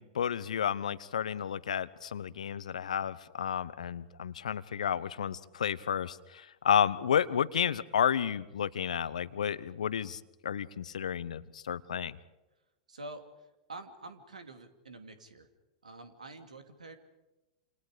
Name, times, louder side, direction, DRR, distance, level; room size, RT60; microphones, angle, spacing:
voice 1, 0.0-12.2, left 8 dB, 75° left, 17 dB, 0.9 m, -31 dB
voice 2, 12.9-15.5 15.8-17.0, right 2 dB, 85° right, 7 dB, 2.6 m, -47 dB
28.5 x 28.0 x 5.1 m, 1.0 s
hypercardioid pair, 100°, 4 cm